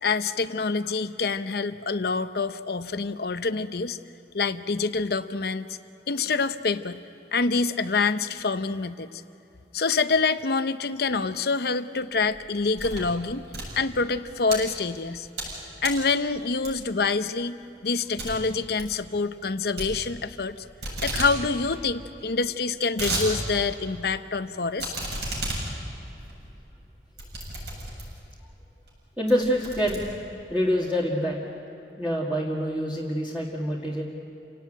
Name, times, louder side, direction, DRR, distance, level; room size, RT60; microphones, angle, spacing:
voice 1, 0.0-4.0 4.3-5.7 6.1-7.0 7.3-9.2 9.7-13.4 13.8-15.3 15.8-20.6 21.0-24.9, left 4 dB, 60° left, 11 dB, 0.8 m, -26 dB
sound 1, 12.2-13.1 13.4-14.6 15.1-15.5 15.8-16.1 16.6-17.0 17.4-17.5 17.8-17.9 18.2-18.3 18.6-18.9 19.8-20.5 20.8-21.3 21.7-21.8 21.9-22.0 22.6-23.3 23.7-23.8 24.8-28.3 28.8-29.0 29.3-30.5, right 2 dB, 70° right, 7.7 m, -33 dB
voice 2, 29.2-30.0 30.5-31.4 32.0-34.0, equal, 10° right, -5 dB, 2.0 m, -26 dB
28.5 x 18.0 x 9.1 m, 2.8 s
head